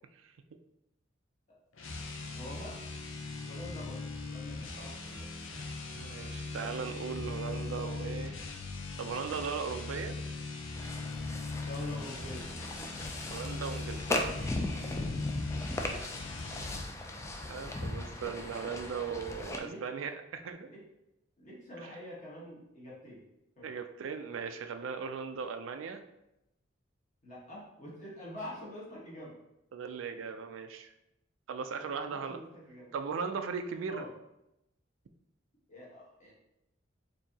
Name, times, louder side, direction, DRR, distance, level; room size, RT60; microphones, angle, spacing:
sound 1, 1.7-16.9, left 3 dB, 85° left, 0.6 m, -40 dB
voice 1, 2.3-3.1 3.4-5.5 11.6-12.5 15.8-16.1 19.6-19.8 20.7-20.8 21.4-23.2 23.6-23.7 27.2-29.4 31.8-33.0 33.9-34.1 35.7-36.3, left 1 dB, 40° left, -6 dB, 1.3 m, -46 dB
voice 2, 6.0-8.3 9.0-10.2 13.3-14.2 17.3-20.7 23.6-26.0 29.7-30.9 31.5-32.4 32.9-34.0, right 6 dB, 85° right, 8 dB, 0.4 m, -38 dB
sound 2, 10.7-19.6, left 1 dB, 15° left, 0.3 m, -38 dB
4.5 x 2.7 x 2.8 m, 0.88 s
head